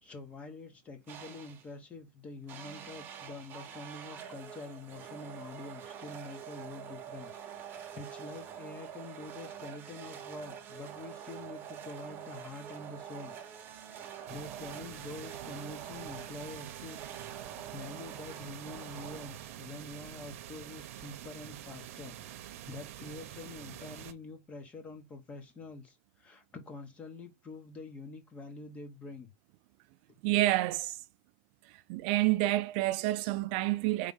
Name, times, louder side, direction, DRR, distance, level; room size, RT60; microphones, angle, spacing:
voice 1, 0.0-13.3 14.3-17.0 17.7-29.3, left 3 dB, 15° left, 1.3 m, -46 dB
sound 1, 1.1-1.7 2.5-19.8, right 9 dB, 25° right, 1.1 m, -46 dB
sound 2, 14.3-24.1, right 12 dB, 80° right, 0.9 m, -46 dB
voice 2, 30.2-31.0 31.9-34.1, right 17 dB, 50° right, 0.4 m, -28 dB
4.8 x 3.6 x 5.5 m
supercardioid pair, 170°, 7 cm